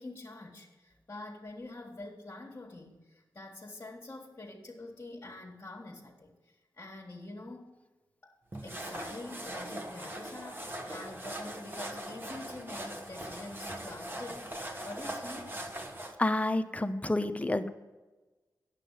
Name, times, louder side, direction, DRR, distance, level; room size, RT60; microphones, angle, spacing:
voice 1, 0.0-6.4 6.8-7.7 8.2-8.4 8.6-14.5 14.8-15.6, left 2 dB, 35° left, -3 dB, 1.5 m, -46 dB
sound 1, 8.5-16.1, right 1 dB, 30° right, 1.5 m, -41 dB
voice 2, 16.2-17.7, left 1 dB, 20° left, 10 dB, 0.7 m, -29 dB
9.1 x 7.4 x 5.6 m, 1.2 s
cardioid pair, 50°, 7 cm